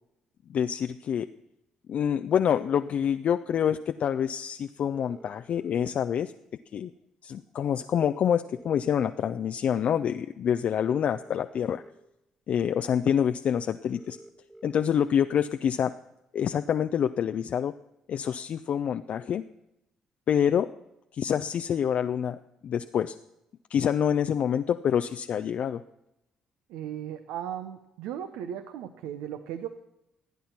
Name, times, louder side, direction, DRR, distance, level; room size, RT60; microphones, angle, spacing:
voice 1, 0.5-1.3 1.9-6.3 6.7-6.9 7.2-11.8 12.5-14.2 14.6-15.9 16.3-17.7 18.1-19.4 20.3-20.7 21.1-23.1 23.7-25.8, left 8 dB, 55° left, 8 dB, 0.4 m, -26 dB
sound 1, 2.5-2.9 4.9-5.9 7.9-8.9 10.9-11.9 13.9-14.9, right 1 dB, 10° right, 2.0 m, -50 dB
voice 2, 26.7-29.7, right 10 dB, 75° right, 10 dB, 0.7 m, -36 dB
15.5 x 9.3 x 5.8 m, 0.86 s
hypercardioid pair, 50°, 3 cm